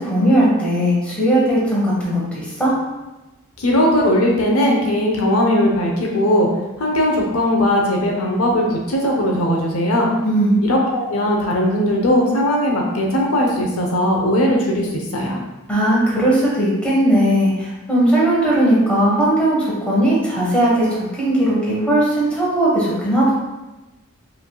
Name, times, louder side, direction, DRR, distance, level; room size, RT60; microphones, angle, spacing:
voice 1, 0.0-2.7 10.2-10.6 15.7-23.3, right 1 dB, 5° left, -7 dB, 1.2 m, -18 dB
voice 2, 3.6-6.5 6.8-10.1 10.6-15.4, left 1 dB, 75° left, -1 dB, 0.7 m, -18 dB
4.9 x 3.4 x 2.3 m, 1.0 s
head